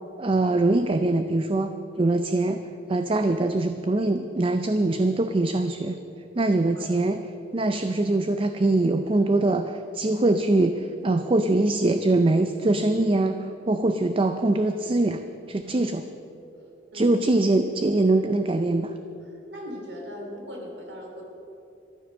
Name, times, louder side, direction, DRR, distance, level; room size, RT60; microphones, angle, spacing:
voice 1, 0.2-2.6 2.9-6.0 6.4-7.2 7.5-15.2 15.5-16.0 16.9-18.9, right 2 dB, 30° right, 8 dB, 0.5 m, -23 dB
voice 2, 19.5-21.2, equal, 80° right, 1 dB, 2.8 m, -39 dB
14.0 x 12.0 x 6.5 m, 2.8 s
head